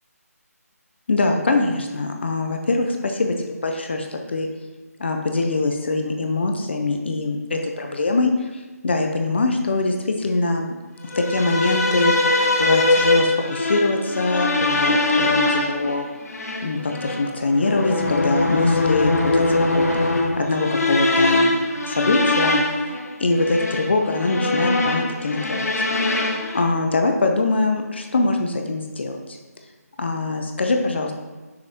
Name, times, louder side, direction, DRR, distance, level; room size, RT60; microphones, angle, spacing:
voice 1, 1.1-4.5 5.0-10.7 11.2-16.1 16.6-19.4 19.7-19.8 20.4-21.6 21.8-22.9 23.2-25.7 26.5-29.4 30.0-31.1, left 2 dB, 40° left, 3 dB, 0.6 m, -23 dB
sound 1, 11.1-26.6, left 2 dB, 70° left, 1.1 m, -22 dB
6.4 x 5.1 x 3.5 m, 1.3 s
figure-of-eight pair, 170°, 9 cm